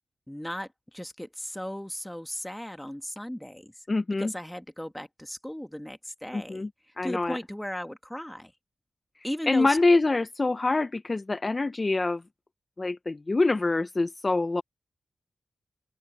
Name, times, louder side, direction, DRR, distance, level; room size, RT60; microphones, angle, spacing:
voice 1, 0.3-3.9 4.2-6.7 7.0-8.5 9.2-9.8, equal, 5° left, 1.9 m, -36 dB
voice 2, 3.9-4.3 6.3-6.7 7.0-7.4 9.5-12.2 12.8-14.6, left 3 dB, 35° left, 0.6 m, -25 dB
open air
cardioid pair, 70°, 0 cm